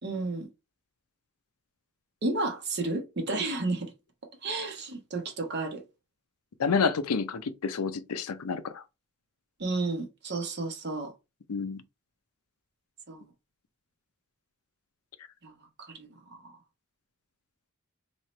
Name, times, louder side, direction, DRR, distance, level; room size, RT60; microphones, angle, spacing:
voice 1, 0.0-0.5 2.2-3.9 4.4-5.8 9.6-11.1 13.1-13.3 15.4-16.6, right 2 dB, 50° right, 1.0 m, -32 dB
voice 2, 6.6-8.8 11.5-11.8, left 5 dB, 90° left, 0.5 m, -29 dB
3.1 x 2.9 x 4.2 m
head